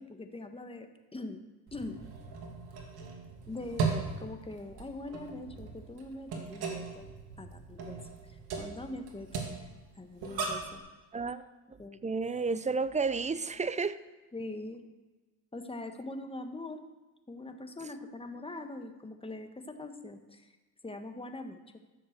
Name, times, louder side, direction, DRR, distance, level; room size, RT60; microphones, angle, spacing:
voice 1, 0.0-1.4 1.7-2.0 3.5-7.1 7.4-8.0 8.6-9.7 10.0-10.8 11.8-12.0 14.3-14.8 15.5-16.8 17.3-20.5 20.8-21.6, left 2 dB, 15° left, 6 dB, 1.4 m, -42 dB
sound 1, 1.7-10.8, right 4 dB, 65° right, 2.7 m, -38 dB
voice 2, 11.1-14.0, right 4 dB, 15° right, 15 dB, 0.5 m, -32 dB
14.0 x 7.3 x 6.7 m, 1.2 s
supercardioid pair, 90°, 41 cm